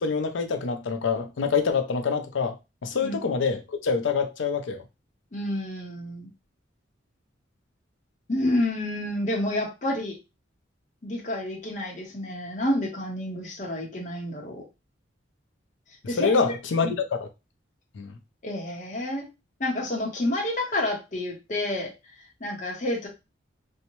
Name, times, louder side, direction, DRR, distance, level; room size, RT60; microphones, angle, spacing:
voice 1, 0.0-2.6 2.8-4.8 16.2-17.3 18.0-18.1, left 5 dB, 80° left, 0.4 m, -26 dB
voice 2, 5.3-6.3 8.3-10.2 11.0-14.6 16.1-16.3 18.4-19.3 19.6-21.9 22.4-23.1, left 1 dB, 40° left, 0.7 m, -29 dB
2.6 x 2.1 x 2.9 m
head